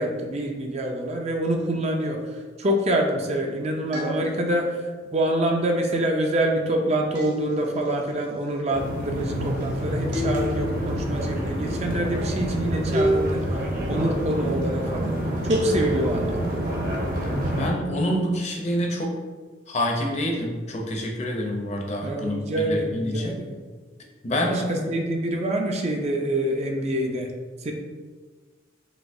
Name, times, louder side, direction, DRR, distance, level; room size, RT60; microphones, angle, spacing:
voice 1, 0.0-13.6 13.9-15.1 15.4-16.6 22.0-23.6 24.4-27.3 27.6-27.7, right 1 dB, 35° right, 2 dB, 0.5 m, -26 dB
sound 1, 3.9-4.8 7.1-8.0 10.1-11.0 12.9-13.8 15.5-16.4, right 1 dB, 80° right, 1.4 m, -28 dB
sound 2, 8.7-17.7, equal, 50° right, 1.0 m, -28 dB
voice 2, 17.6-19.1 19.7-23.3 24.2-24.9, equal, 40° left, 0 dB, 0.6 m, -27 dB
6.0 x 2.7 x 2.6 m, 1.4 s
head